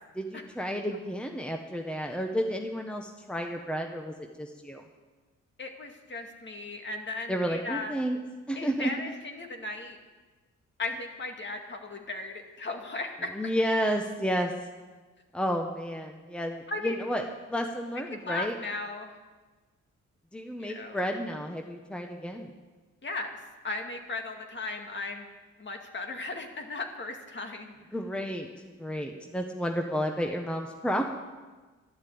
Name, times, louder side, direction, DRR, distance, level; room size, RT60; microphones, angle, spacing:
voice 1, 0.2-4.8 7.3-8.2 8.5-8.9 13.3-14.5 15.3-18.6 20.3-22.5 27.9-31.0, equal, 5° left, 3 dB, 1.0 m, -31 dB
voice 2, 5.6-8.0 8.6-10.0 10.8-13.5 16.7-17.0 18.2-19.2 20.6-21.0 23.0-23.3 23.6-25.3 25.6-27.7, left 3 dB, 40° left, 3 dB, 2.1 m, -36 dB
12.0 x 11.5 x 8.5 m, 1.3 s
cardioid pair, 105°, 30 cm